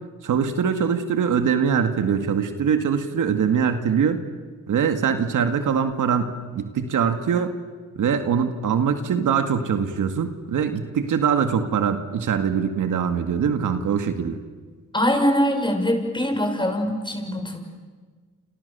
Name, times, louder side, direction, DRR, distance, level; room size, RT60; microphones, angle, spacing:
voice 1, 0.2-4.2 4.7-7.6 8.0-14.4, right 7 dB, 80° right, 8 dB, 2.1 m, -23 dB
voice 2, 14.9-17.6, equal, 15° left, 4 dB, 6.5 m, -22 dB
29.0 x 29.0 x 7.0 m, 1.5 s
cardioid pair, 70°, 31 cm